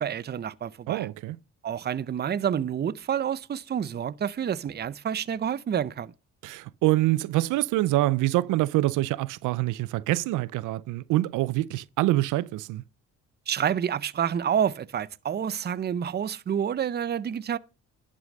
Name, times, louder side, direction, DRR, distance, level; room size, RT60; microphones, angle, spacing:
voice 1, 0.0-1.1 1.6-6.1 13.5-17.6, right 8 dB, 35° right, 0.6 m, -28 dB
voice 2, 0.9-1.4 6.4-12.8, right 17 dB, 90° right, 0.5 m, -25 dB
11.0 x 6.3 x 5.3 m
cardioid pair, 90°, 30 cm